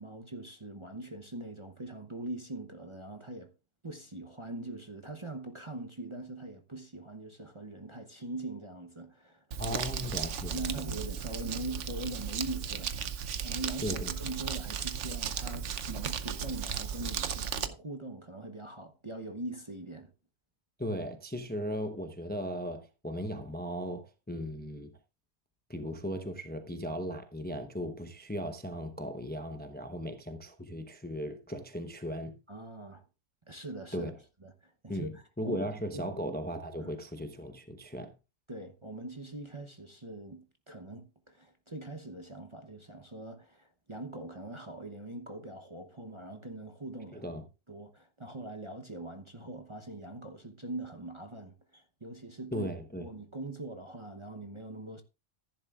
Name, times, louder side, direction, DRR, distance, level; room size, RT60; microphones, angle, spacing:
voice 1, 0.0-3.5 3.8-9.8 10.5-13.1 13.4-20.1 32.5-33.0 33.5-34.1 34.4-35.6 35.9-36.1 36.8-37.0 38.5-47.3 47.7-52.7 53.0-55.0, right 2 dB, 25° right, 0.8 m, -42 dB
Crumpling crinkling, 9.5-17.7, right 7 dB, 65° right, 1.1 m, -35 dB
voice 2, 9.6-10.9 13.8-14.1 20.8-24.9 25.7-32.3 33.9-34.1 34.9-38.1 47.1-47.4 52.5-53.0, equal, 10° left, 0.7 m, -37 dB
14.5 x 10.5 x 2.4 m
omnidirectional pair, 1.3 m